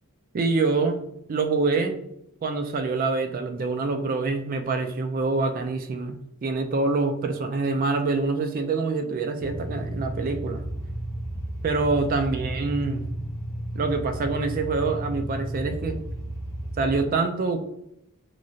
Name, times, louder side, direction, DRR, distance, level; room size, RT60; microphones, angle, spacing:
voice 1, 0.3-1.0 1.3-2.0 2.4-10.6 11.6-13.0 13.7-16.0 16.8-17.6, right 3 dB, 40° right, 7 dB, 0.3 m, -25 dB
sound 1, 9.4-17.0, right 1 dB, 15° left, 0.7 m, -33 dB
3.1 x 2.3 x 2.6 m, 0.78 s
head